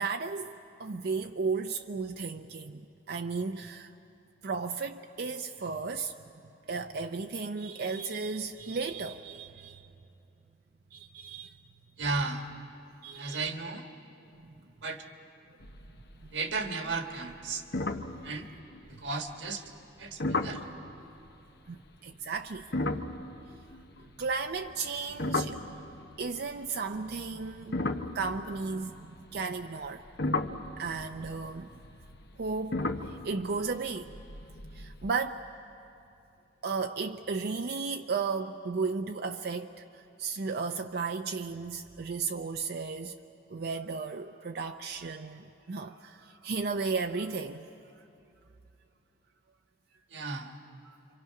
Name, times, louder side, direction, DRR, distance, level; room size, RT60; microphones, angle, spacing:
voice 1, 0.0-3.9 4.4-6.1 6.7-9.9 10.9-11.6 13.0-13.5 14.4-14.5 21.7-22.7 24.0-25.6 26.2-30.0 30.8-31.8 32.4-34.1 34.7-35.5 36.6-43.2 43.5-47.7 48.0-48.1 50.8-51.0, right 4 dB, 60° right, 5 dB, 0.5 m, -34 dB
voice 2, 12.0-12.5 13.1-13.9 14.8-15.1 16.3-17.6 18.2-18.5 18.9-19.7 20.0-20.7 50.1-50.6, right 3 dB, 80° right, 5 dB, 1.5 m, -34 dB
sound 1, 15.6-16.3 16.5-16.9 17.3-17.4 17.7-19.0 20.2-20.7 22.6-26.2 27.0-29.2 29.8-35.1, left 2 dB, 65° left, 0.9 m, -35 dB
28.0 x 25.0 x 5.8 m, 2.7 s
head